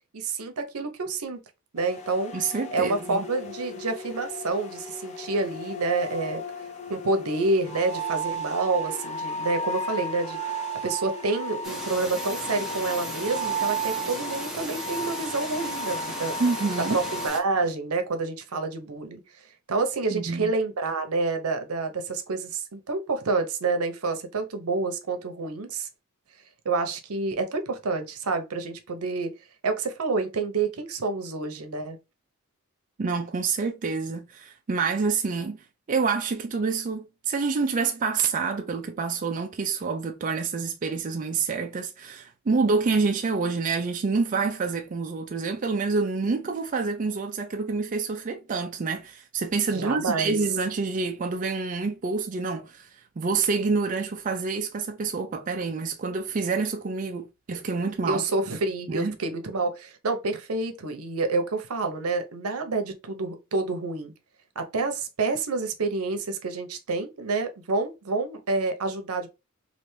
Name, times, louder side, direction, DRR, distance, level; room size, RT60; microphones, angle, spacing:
voice 1, 0.1-1.4 1.7-2.3 2.7-6.4 6.9-10.4 10.8-16.3 16.9-19.2 19.7-25.9 26.6-29.3 29.6-32.0 49.7-50.4 58.0-64.1 64.6-69.3, right 3 dB, 80° right, 0.7 m, -28 dB
sound 1, 1.8-17.3, right 1 dB, 30° left, 0.6 m, -34 dB
voice 2, 2.3-3.3 16.4-17.0 20.1-20.5 33.0-52.9 53.2-58.2 58.9-59.2, right 4 dB, 35° right, 0.4 m, -27 dB
sound 2, 11.6-17.4, right 1 dB, ahead, 0.7 m, -37 dB
3.3 x 2.5 x 3.1 m
head